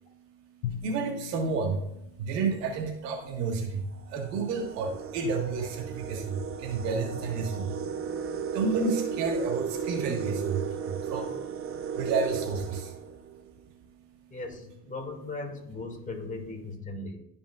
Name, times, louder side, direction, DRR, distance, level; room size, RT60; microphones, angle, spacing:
voice 1, 0.0-14.3, right 4 dB, 75° right, 3 dB, 1.8 m, -32 dB
Drum, 0.6-3.0, left 9 dB, 70° left, 0.8 m, -40 dB
sound 1, 2.2-2.5 3.3-3.4 3.9-13.6, right 7 dB, 30° right, 0.7 m, -35 dB
voice 2, 14.3-17.3, left 2 dB, 15° left, 1 dB, 2.1 m, -38 dB
13.5 x 5.4 x 2.4 m, 0.78 s
hypercardioid pair, 70°, 48 cm